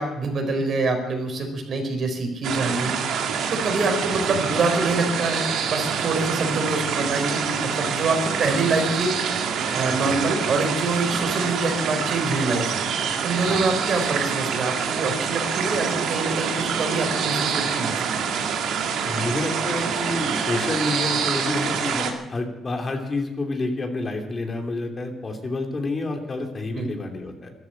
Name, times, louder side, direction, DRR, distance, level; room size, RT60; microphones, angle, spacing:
voice 1, 0.0-2.9 3.5-9.1 9.7-12.8 13.2-18.2 26.7-26.9, right 3 dB, 55° right, 4 dB, 4.4 m, -25 dB
sound 1, 2.4-22.1, right 6 dB, 80° right, 2.1 m, -26 dB
voice 2, 9.9-10.2 13.5-13.7 19.0-27.5, left 2 dB, 35° left, 4 dB, 2.9 m, -29 dB
13.5 x 11.5 x 8.9 m, 0.94 s
cardioid pair, 90°, 0 cm